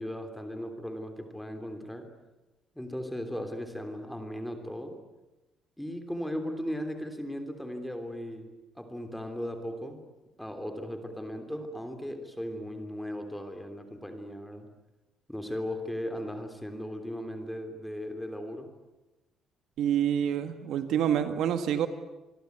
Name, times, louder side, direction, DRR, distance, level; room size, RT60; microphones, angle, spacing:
voice 1, 0.0-2.1 2.7-5.0 5.8-8.5 8.7-10.0 10.4-14.7 15.3-18.7, equal, ahead, 6 dB, 3.2 m, -37 dB
voice 2, 19.8-21.9, right 9 dB, 65° right, 9 dB, 1.9 m, -27 dB
27.0 x 22.0 x 9.4 m, 1.1 s
cardioid pair, 175°, 0 cm